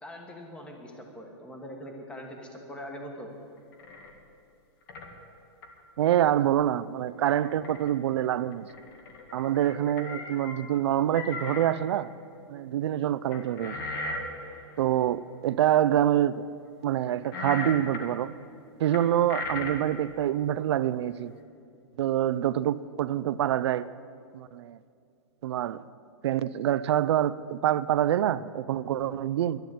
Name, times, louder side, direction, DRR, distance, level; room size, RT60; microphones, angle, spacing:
voice 1, 0.0-3.3, equal, 5° left, 1.4 m, -42 dB
sound 1, 3.7-4.1 4.9-5.1 5.6-5.8 7.3-7.9 8.2-8.3 8.5-10.8 11.1-11.7 13.3-15.0 17.2-18.1 18.9-19.9, left 2 dB, 50° left, 2.0 m, -37 dB
voice 2, 6.0-8.7 9.3-12.1 12.5-13.8 14.8-16.4 16.8-18.3 18.8-21.3 22.0-23.9 24.3-24.8 25.4-25.8 26.2-29.6, right 11 dB, 65° right, 0.5 m, -26 dB
11.5 x 10.5 x 9.1 m
hypercardioid pair, 160°, 15 cm